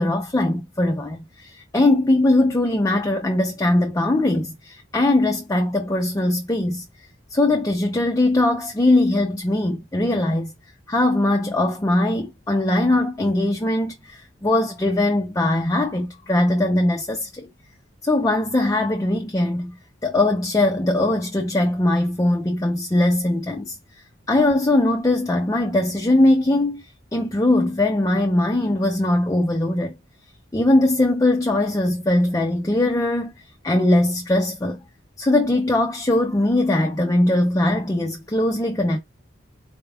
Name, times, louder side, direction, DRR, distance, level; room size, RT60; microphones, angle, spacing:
voice 1, 0.0-6.8 7.3-10.5 10.9-17.5 18.0-19.8 20.0-23.8 24.3-29.9 30.5-33.3 33.6-34.8 35.2-39.0, left 1 dB, 15° left, 0.4 m, -20 dB
4.2 x 2.3 x 3.4 m
head